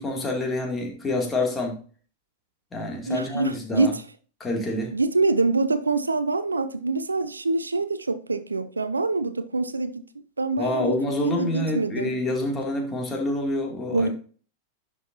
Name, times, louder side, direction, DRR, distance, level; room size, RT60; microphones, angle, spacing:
voice 1, 0.0-1.8 2.7-3.9 4.4-4.9 10.6-14.1, left 2 dB, 15° left, 2.5 m, -27 dB
voice 2, 3.1-4.0 4.9-10.1 10.4-11.0 11.2-12.1 13.9-14.1, right 3 dB, 80° right, 0.5 m, -25 dB
11.0 x 5.5 x 2.7 m
figure-of-eight pair, 90°, 0 cm